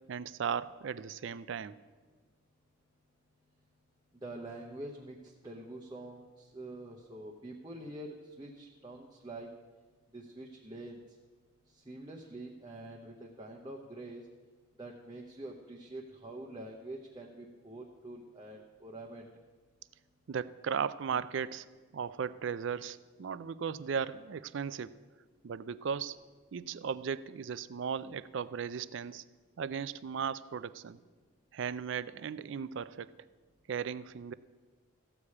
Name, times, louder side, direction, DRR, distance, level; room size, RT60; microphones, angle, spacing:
voice 1, 0.1-1.7 20.3-21.6 21.9-24.9 25.4-26.2 26.5-29.2 29.6-31.0 31.5-33.1 33.7-34.3, right 6 dB, 55° right, 17 dB, 0.4 m, -36 dB
voice 2, 4.2-9.5 10.1-11.0 11.7-14.2 14.8-19.3, right 1 dB, 20° right, -1 dB, 0.8 m, -46 dB
14.5 x 4.9 x 8.4 m, 1.4 s
head